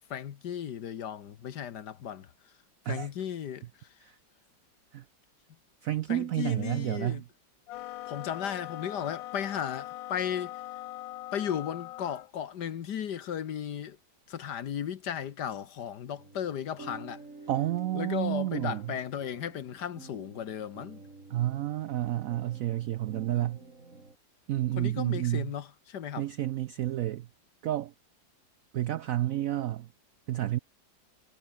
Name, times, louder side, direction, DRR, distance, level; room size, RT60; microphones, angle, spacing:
voice 1, 0.1-2.3 2.9-3.6 6.1-7.2 8.1-10.6 11.3-14.0 14.3-17.2 17.9-21.0 24.8-26.3, left 9 dB, 65° left, 1.7 m, -35 dB
voice 2, 5.8-7.2 17.5-18.8 21.3-23.6 24.5-25.5 26.2-27.3 27.6-27.9 28.7-29.9 30.3-30.6, right 13 dB, 90° right, 0.7 m, -30 dB
sound 1, 7.7-12.3, left 16 dB, 80° left, 1.3 m, -41 dB
sound 2, 16.2-24.1, right 3 dB, 40° right, 4.0 m, -49 dB
omnidirectional pair, 2.0 m